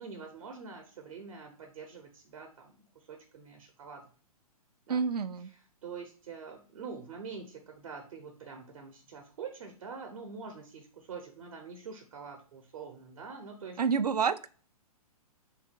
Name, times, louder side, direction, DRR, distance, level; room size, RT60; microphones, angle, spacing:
voice 1, 0.0-4.1 4.9-5.0 5.5-13.8, right 5 dB, 65° right, 4 dB, 0.9 m, -45 dB
voice 2, 4.9-5.5 13.8-14.5, right 6 dB, 85° right, 14 dB, 0.4 m, -28 dB
3.5 x 2.9 x 4.4 m, 0.40 s
hypercardioid pair, 125°, 19 cm